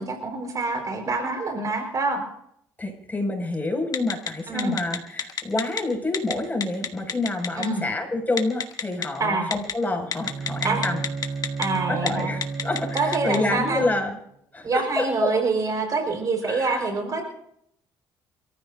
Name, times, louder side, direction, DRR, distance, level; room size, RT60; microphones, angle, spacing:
voice 1, 0.0-2.2 4.5-4.8 7.5-7.8 9.2-9.5 10.6-10.9 11.6-12.3 12.9-13.8 14.6-17.2, right 3 dB, 45° right, 3 dB, 4.7 m, -26 dB
voice 2, 2.8-11.0 11.9-14.2 14.5-15.3 16.5-16.9 17.2-17.3, left 2 dB, 20° left, 2 dB, 6.1 m, -28 dB
Telephone, 3.9-4.3 4.6-5.8 6.1-6.3 6.6-7.7 8.4-9.0 9.5-9.7 10.1-11.7 12.0-12.1 12.4-13.4, left 7 dB, 50° left, 1.9 m, -26 dB
Bowed string instrument, 10.1-14.2, right 4 dB, 65° right, 7.2 m, -33 dB
28.0 x 14.5 x 2.7 m, 0.73 s
supercardioid pair, 70°, 8 cm